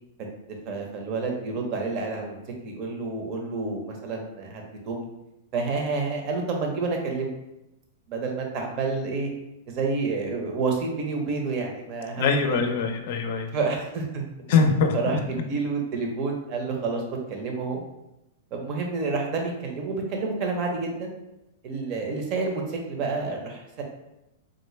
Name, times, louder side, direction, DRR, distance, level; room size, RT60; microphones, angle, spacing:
voice 1, 0.7-2.4 2.6-5.1 5.5-7.3 8.1-9.3 9.7-12.2 12.5-12.7 13.5-14.2 14.9-17.0 17.3-17.8 18.5-21.2 21.6-23.8, right 4 dB, 40° right, 2 dB, 0.7 m, -29 dB
voice 2, 12.2-13.5 14.5-15.2, left 5 dB, 60° left, 5 dB, 0.5 m, -23 dB
3.7 x 2.1 x 3.2 m, 0.91 s
hypercardioid pair, 145°, 0 cm